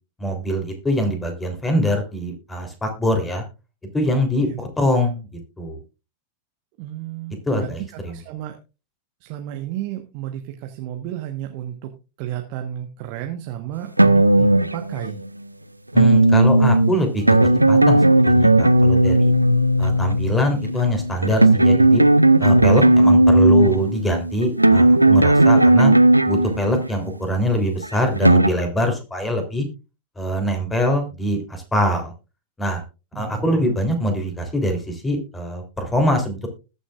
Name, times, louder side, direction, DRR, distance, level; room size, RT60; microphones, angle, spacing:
voice 1, 0.2-3.4 3.9-5.8 7.5-8.1 15.9-17.2 17.7-19.3 19.8-22.0 22.4-25.9 26.2-29.6 30.1-32.1 32.6-32.8 33.1-36.5, equal, 10° left, 4 dB, 3.4 m, -23 dB
voice 2, 6.8-8.6 9.2-15.2 22.9-23.1 33.1-33.7, right 12 dB, 45° right, 5 dB, 1.2 m, -32 dB
sound 1, 14.0-15.3 15.9-27.1 27.8-28.5, right 1 dB, 85° right, 0.5 m, -15 dB
20.5 x 7.1 x 2.4 m, 0.30 s
figure-of-eight pair, 90°, 0 cm